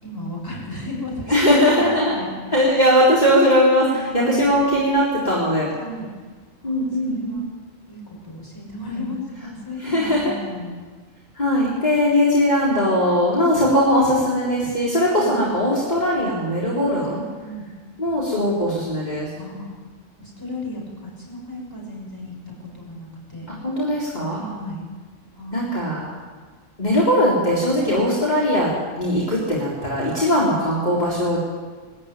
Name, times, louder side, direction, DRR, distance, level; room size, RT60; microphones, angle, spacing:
voice 1, 0.0-2.7 3.8-4.5 5.8-6.1 6.6-7.4 7.9-10.7 15.2-15.4 17.4-17.7 19.4-19.7 20.2-23.5 24.3-24.8 25.3-26.0 27.8-28.0, left 1 dB, 15° left, -2 dB, 5.9 m, -34 dB
voice 2, 1.3-2.2 2.5-5.7 6.6-7.4 8.9-9.1 9.8-10.3 11.3-17.2 18.0-19.3 23.6-24.4 25.5-26.0 26.8-31.4, equal, 35° left, -7 dB, 4.2 m, -20 dB
20.5 x 14.0 x 9.2 m, 1.4 s
omnidirectional pair, 1.3 m